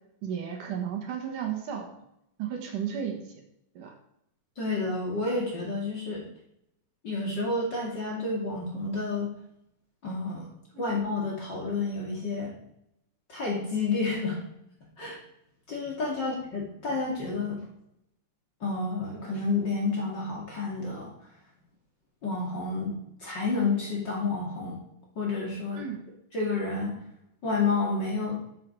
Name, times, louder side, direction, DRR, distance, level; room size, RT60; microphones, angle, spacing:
voice 1, 0.2-1.9 2.4-3.2 3.8-3.9 10.7-10.9 16.2-16.3 25.8-26.0, right 8 dB, 70° right, 3 dB, 3.0 m, -33 dB
voice 2, 4.6-6.3 7.0-9.3 10.0-10.5 10.8-12.5 13.3-14.4 15.0-15.2 15.7-17.6 18.6-21.1 22.2-24.8 25.2-25.8 26.3-26.9 27.4-28.4, left 3 dB, 35° left, -3 dB, 2.7 m, -30 dB
12.0 x 7.6 x 4.7 m, 0.77 s
omnidirectional pair, 3.9 m